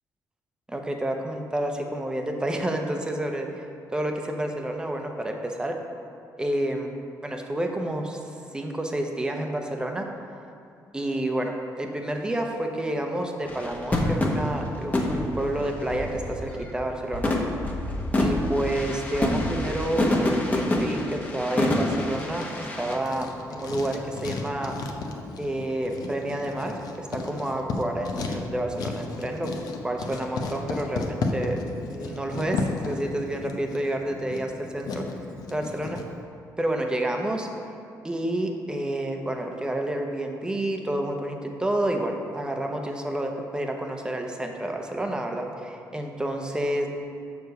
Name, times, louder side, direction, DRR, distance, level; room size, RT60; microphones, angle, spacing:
voice 1, 0.7-3.6 3.9-5.8 6.4-6.9 7.2-10.1 10.9-17.4 18.2-24.7 25.4-29.5 29.8-35.0 35.5-36.0 36.6-37.5 38.0-46.9, right 1 dB, 10° right, 3 dB, 0.8 m, -29 dB
sound 1, 13.5-16.7 17.1-23.0, left 1 dB, 25° left, 1.0 m, -27 dB
Writing, 21.7-36.1, left 3 dB, 75° left, 0.7 m, -34 dB
6.5 x 4.8 x 6.5 m, 2.5 s
cardioid pair, 115°, 7 cm